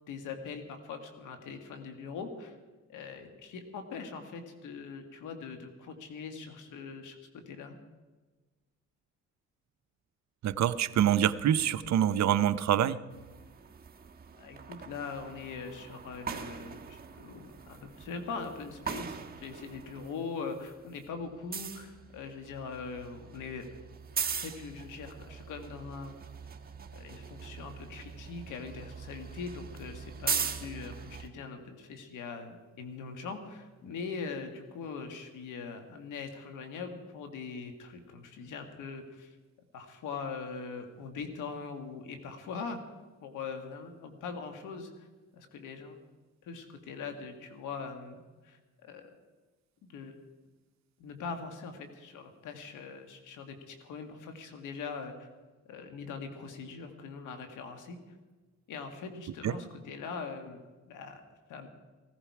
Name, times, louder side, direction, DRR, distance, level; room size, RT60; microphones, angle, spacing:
voice 1, 0.1-2.6 2.9-7.2 7.5-7.7 14.3-23.7 24.4-26.2 26.9-39.4 39.7-42.8 43.2-45.1 45.3-46.0 46.4-48.2 48.4-49.1 49.8-50.2 51.0-55.3 55.7-58.0 58.7-60.6 60.9-61.2 61.5-61.7, left 5 dB, 85° left, 6 dB, 1.8 m, -42 dB
voice 2, 10.4-13.0 59.4-59.5, right 10 dB, 65° right, 12 dB, 0.7 m, -26 dB
sound 1, 13.1-20.1 20.5-31.3, right 6 dB, 30° right, 1.3 m, -41 dB
16.5 x 15.0 x 4.8 m, 1.3 s
cardioid pair, 90°, 30 cm